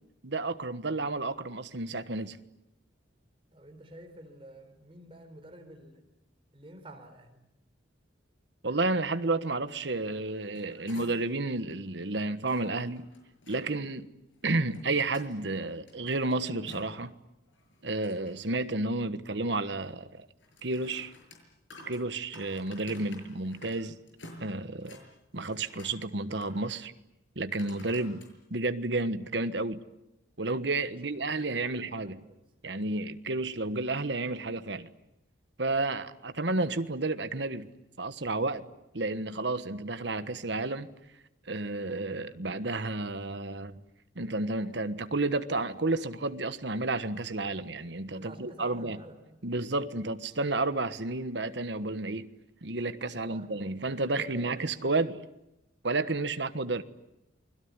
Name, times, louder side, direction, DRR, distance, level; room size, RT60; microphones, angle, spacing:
voice 1, 0.2-2.4 8.6-13.1 13.5-14.1 14.4-17.1 17.8-20.1 20.6-21.1 21.9-24.0 24.4-25.0 25.3-26.9 27.3-28.2 28.5-29.8 30.4-32.2 32.6-34.9 35.6-37.7 38.0-38.6 38.9-40.9 41.5-43.7 44.1-49.0 49.4-52.3 52.6-55.2 55.8-56.8, right 2 dB, 65° right, 1.3 m, -31 dB
voice 2, 3.5-6.1 6.5-7.4 24.8-25.1 30.7-32.4 48.1-49.4 53.1-54.5, right 1 dB, 30° right, 4.2 m, -51 dB
sound 1, 10.3-11.4 11.7-11.8 12.4-13.6 14.4-15.3 15.7-17.1 17.5-18.5 20.4-23.8 24.1-25.1 25.4-26.0 26.4-26.8 27.6-28.3 28.9-29.0, left 2 dB, 80° left, 6.8 m, -51 dB
29.0 x 21.0 x 9.7 m
head